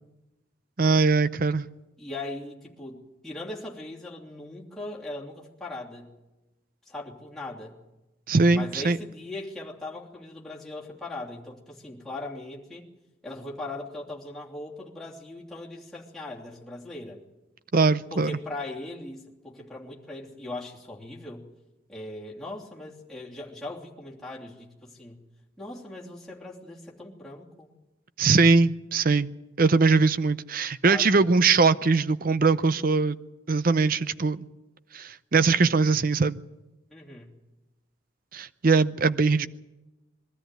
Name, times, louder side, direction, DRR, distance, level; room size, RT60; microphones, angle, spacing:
voice 1, 0.8-1.7 8.3-9.0 17.7-18.4 28.2-29.3 29.6-33.2 33.5-34.5 34.9-36.4 38.3-39.5, right 4 dB, 45° right, 14 dB, 0.6 m, -21 dB
voice 2, 2.0-6.1 6.9-7.8 8.5-12.9 13.2-17.2 18.1-21.5 21.9-25.2 25.6-27.7 30.8-31.3 36.9-37.3, left 2 dB, ahead, -6 dB, 3.0 m, -39 dB
22.5 x 13.5 x 9.2 m, 1.0 s
head